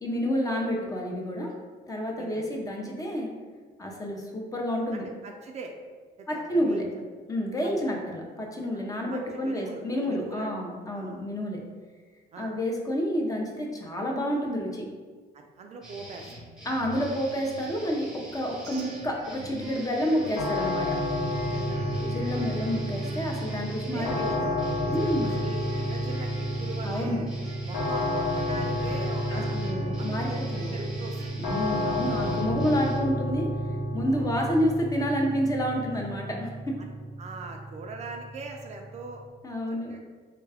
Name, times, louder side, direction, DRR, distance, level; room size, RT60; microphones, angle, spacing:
voice 1, 0.0-1.5 1.9-3.3 3.8-5.0 6.3-6.9 7.3-11.6 12.4-14.8 16.7-20.9 22.1-24.3 24.9-25.3 26.8-27.2 29.3-30.7 31.4-33.5 33.9-36.5 39.4-40.0, equal, 20° left, 0 dB, 0.6 m, -29 dB
voice 2, 2.2-2.5 4.9-5.7 6.2-6.9 7.6-8.0 8.7-8.9 9.1-10.5 10.9-11.3 12.3-12.5 15.3-16.3 16.8-17.0 21.5-22.6 23.4-23.5 23.8-24.6 25.4-27.3 27.7-29.6 30.0-31.4 32.1-32.3 32.9-33.0 34.1-34.3 36.8-36.9 37.2-39.2 39.9-40.0, right 3 dB, 40° right, 3 dB, 0.4 m, -42 dB
sound 1, 15.8-33.0, right 1 dB, 5° right, 0.8 m, -44 dB
sound 2, 18.6-31.3, right 1 dB, 85° right, 0.7 m, -46 dB
sound 3, 20.4-39.3, equal, 65° left, 1.0 m, -31 dB
3.4 x 2.3 x 3.3 m, 1.5 s
cardioid pair, 110°, 17 cm